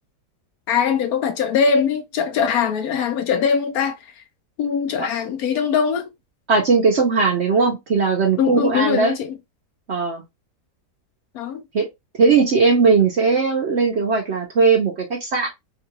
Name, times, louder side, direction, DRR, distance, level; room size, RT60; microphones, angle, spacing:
voice 1, 0.7-4.2 4.6-6.1 8.4-9.4 11.3-11.6, left 6 dB, 70° left, 1.0 m, -21 dB
voice 2, 6.5-9.2 9.9-10.2 11.7-11.9 12.2-15.5, right 4 dB, 55° right, 0.8 m, -18 dB
3.6 x 2.3 x 3.0 m
omnidirectional pair, 1.8 m